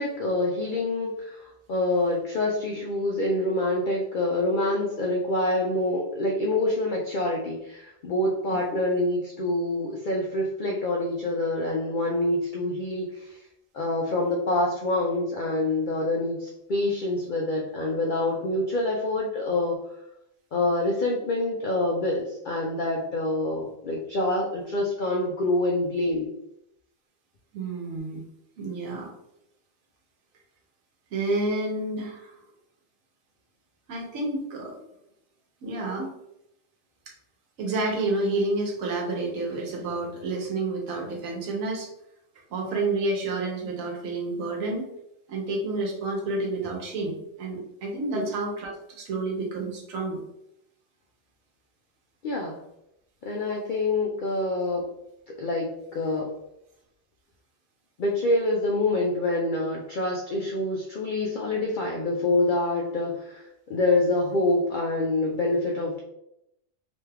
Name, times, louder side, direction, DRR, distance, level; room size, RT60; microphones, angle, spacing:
voice 1, 0.0-13.4 13.7-19.8 20.5-26.3 48.1-48.2 52.2-52.6 53.2-54.9 55.4-56.3 58.0-66.0, left 2 dB, 70° left, -2 dB, 0.4 m, -26 dB
voice 2, 27.5-28.2 28.6-29.1 31.1-32.3 33.9-34.8 35.6-36.1 37.6-41.9 42.5-44.9 45.3-50.2, right 2 dB, 85° right, 0 dB, 1.2 m, -29 dB
2.9 x 2.3 x 3.3 m, 0.81 s
omnidirectional pair, 1.4 m